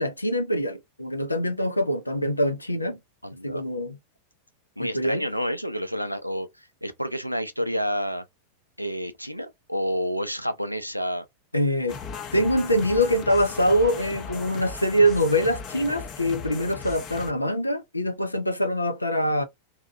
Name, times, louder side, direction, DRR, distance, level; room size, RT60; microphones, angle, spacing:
voice 1, 0.0-3.0 3.4-4.0 4.8-5.2 11.5-12.0 12.3-19.4, equal, 85° left, 0.4 m, -24 dB
voice 2, 3.2-3.6 4.8-8.2 8.8-11.3, equal, 90° right, 0.4 m, -29 dB
sound 1, 11.9-17.3, left 6 dB, 30° left, 0.7 m, -37 dB
2.7 x 2.3 x 2.5 m
figure-of-eight pair, 90°, 0 cm